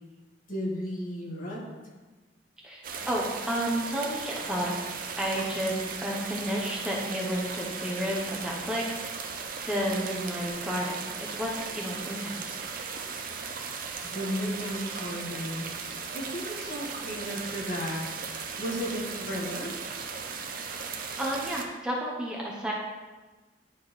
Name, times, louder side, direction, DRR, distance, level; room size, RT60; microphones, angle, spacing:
voice 1, 0.5-1.6 14.0-15.7 16.1-18.0 18.6-19.7, equal, 50° left, -5 dB, 1.7 m, -34 dB
voice 2, 2.6-4.8 5.2-9.3 9.7-12.6 21.2-22.7, equal, 5° right, -4 dB, 0.8 m, -31 dB
sound 1, 2.8-21.7, right 5 dB, 50° right, 0.6 m, -37 dB
10.5 x 4.3 x 3.1 m, 1.3 s
head